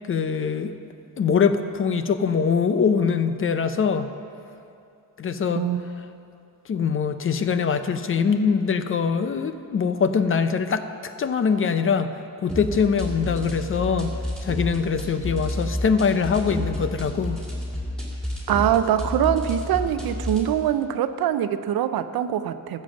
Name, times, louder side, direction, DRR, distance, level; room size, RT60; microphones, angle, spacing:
voice 1, 0.1-0.7 1.2-4.1 5.2-5.6 6.7-12.1 12.4-14.1 14.4-17.4, left 6 dB, 35° left, 10 dB, 0.6 m, -23 dB
sound 1, 12.5-20.5, equal, ahead, 2.5 m, -31 dB
voice 2, 18.5-22.8, right 10 dB, 70° right, 11 dB, 0.7 m, -23 dB
14.0 x 7.5 x 6.3 m, 2.6 s
cardioid pair, 130°, 37 cm